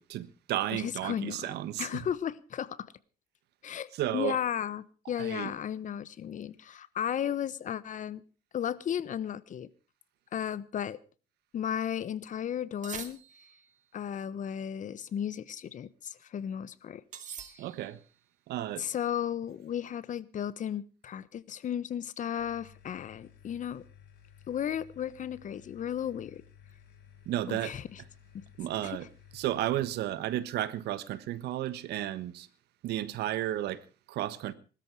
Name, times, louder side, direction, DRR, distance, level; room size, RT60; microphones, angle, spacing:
voice 1, 0.0-2.1 3.9-4.4 5.2-5.5 17.6-18.0 18.5-18.9 27.2-27.7 28.6-29.1 29.3-32.5 32.8-34.5, right 13 dB, 75° right, 1.4 m, -33 dB
voice 2, 0.7-1.5 1.8-2.8 3.6-8.2 8.5-9.7 10.3-11.0 11.5-13.2 13.9-17.0 18.8-23.8 24.5-26.4 27.5-28.0 28.3-28.4 28.8-29.0, left 9 dB, 50° left, 1.2 m, -34 dB
sound 1, 12.8-13.7 17.1-18.1, right 7 dB, 45° right, 2.6 m, -44 dB
sound 2, 22.4-30.0, left 9 dB, 85° left, 4.3 m, -56 dB
20.5 x 13.0 x 4.8 m
cardioid pair, 110°, 17 cm